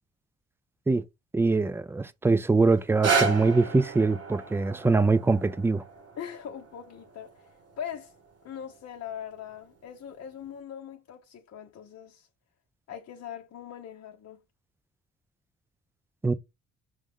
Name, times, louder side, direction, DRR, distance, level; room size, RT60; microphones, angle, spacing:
voice 1, 1.3-5.8 16.2-16.3, right 3 dB, 10° right, 0.4 m, -23 dB
sound 1, 2.8-8.9 9.5-9.6, right 5 dB, 55° right, 1.2 m, -33 dB
voice 2, 6.1-8.1 8.4-12.3 12.9-14.4, left 9 dB, 55° left, 0.7 m, -41 dB
6.2 x 2.1 x 3.5 m
cardioid pair, 90°, 30 cm